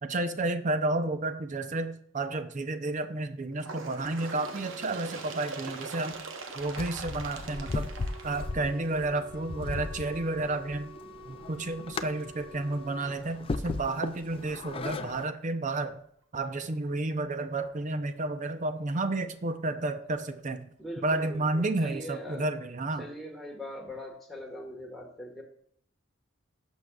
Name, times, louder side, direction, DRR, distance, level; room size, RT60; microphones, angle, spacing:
voice 1, 0.0-6.1 6.5-7.9 8.2-10.9 11.2-16.0 16.3-20.6 21.0-23.0, right 2 dB, 40° right, 9 dB, 0.6 m, -31 dB
Bird, 3.6-9.0 9.9-10.0 10.4-10.5 11.4-11.5 12.4-12.5 13.4-13.5, right 4 dB, 65° right, 0.8 m, -42 dB
sound 1, 6.6-15.2, left 3 dB, 25° left, 0.3 m, -37 dB
Wind instrument woodwind instrument, 7.4-13.2, right 1 dB, 15° right, 3.0 m, -49 dB
voice 2, 20.8-22.5 23.0-25.4, equal, ahead, -2 dB, 1.5 m, -41 dB
11.5 x 6.2 x 2.3 m, 0.67 s
head